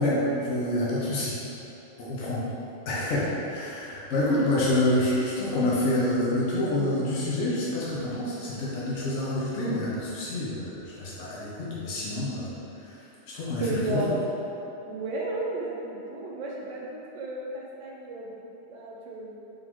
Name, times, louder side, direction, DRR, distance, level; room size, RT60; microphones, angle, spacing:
voice 1, 0.0-1.4 2.0-2.4 2.9-12.5 12.8-13.0 13.3-14.1, left 1 dB, 75° left, -7 dB, 1.0 m, -27 dB
voice 2, 13.6-14.4 14.9-19.4, right 2 dB, 80° right, -3 dB, 1.0 m, -33 dB
3.7 x 3.5 x 3.0 m, 2.9 s
omnidirectional pair, 1.2 m